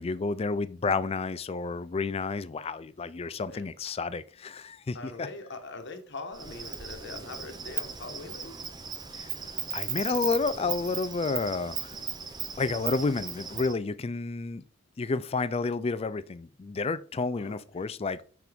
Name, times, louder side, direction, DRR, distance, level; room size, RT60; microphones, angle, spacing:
voice 1, 0.0-5.3 9.1-9.3 9.7-11.9 12.6-14.6 15.0-18.2, left 4 dB, 30° left, 0.4 m, -30 dB
voice 2, 3.1-3.7 4.9-8.6 17.3-18.1, left 3 dB, 55° left, 1.2 m, -43 dB
Insect, 6.3-13.7, right 7 dB, 20° right, 0.5 m, -37 dB
6.0 x 5.9 x 3.5 m
head